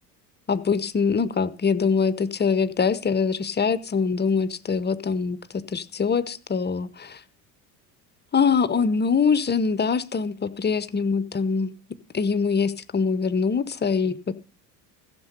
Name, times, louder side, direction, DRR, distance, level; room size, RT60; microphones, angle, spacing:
voice 1, 0.5-7.2 8.3-11.7 12.1-14.3, left 5 dB, 20° left, 16 dB, 0.8 m, -23 dB
15.0 x 6.8 x 5.3 m, 0.34 s
hypercardioid pair, 65°, 47 cm